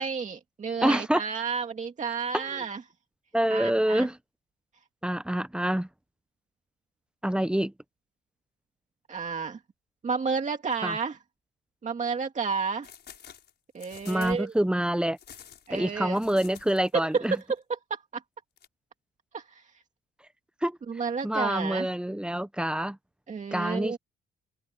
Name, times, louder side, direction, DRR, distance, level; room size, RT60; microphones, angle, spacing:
voice 1, 0.0-2.8 3.5-4.1 9.1-9.6 10.0-11.2 11.8-12.9 13.7-14.5 15.7-16.2 17.1-17.3 17.9-18.0 19.3-19.6 20.9-21.9 23.3-24.0, right 5 dB, 40° right, 2.1 m, -31 dB
voice 2, 0.8-1.2 2.3-2.6 3.3-4.2 5.0-5.9 7.2-7.7 10.8-11.0 14.1-15.2 15.7-17.4 20.6-20.8 21.2-23.0 23.5-24.0, right 1 dB, 5° right, 1.0 m, -26 dB
sound 1, 12.8-14.5 15.2-17.0 17.2-17.4 18.6-18.7, left 8 dB, 60° left, 5.7 m, -48 dB
cardioid pair, 90°, 20 cm